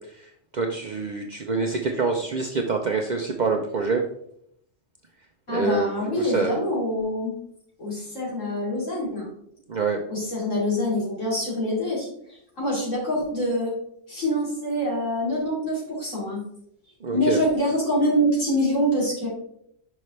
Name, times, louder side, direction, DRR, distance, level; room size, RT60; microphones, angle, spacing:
voice 1, 0.1-4.0 5.5-6.6 9.7-10.0 17.0-17.4, right 4 dB, 55° right, 2 dB, 0.5 m, -26 dB
voice 2, 5.5-7.3 7.8-9.3 10.1-12.1 12.6-13.7 14.1-16.4 17.1-19.3, equal, 80° left, -6 dB, 3.2 m, -25 dB
5.7 x 5.3 x 3.2 m, 0.72 s
omnidirectional pair, 1.3 m